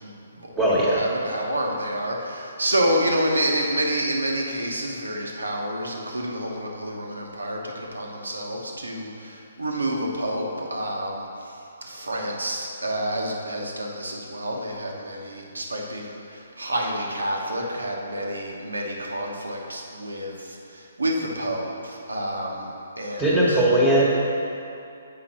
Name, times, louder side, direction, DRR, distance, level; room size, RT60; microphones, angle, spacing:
voice 1, 0.0-22.7 23.0-23.6, right 1 dB, 85° right, 0 dB, 1.1 m, -29 dB
voice 2, 0.6-1.0 23.2-24.0, right 1 dB, 10° right, -8 dB, 1.2 m, -19 dB
7.7 x 5.0 x 4.3 m, 2.6 s
figure-of-eight pair, 135°, 0 cm